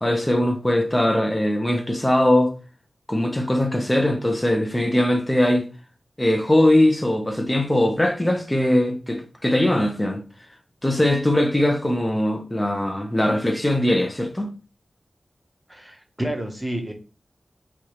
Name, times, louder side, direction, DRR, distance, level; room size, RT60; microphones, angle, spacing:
voice 1, 0.0-2.5 3.1-5.7 6.2-10.2 10.8-14.5, left 1 dB, 15° left, 0.8 m, -21 dB
voice 2, 15.7-16.9, right 1 dB, 15° right, 0.8 m, -29 dB
4.7 x 2.4 x 3.0 m
wide cardioid pair, 105°, 0 cm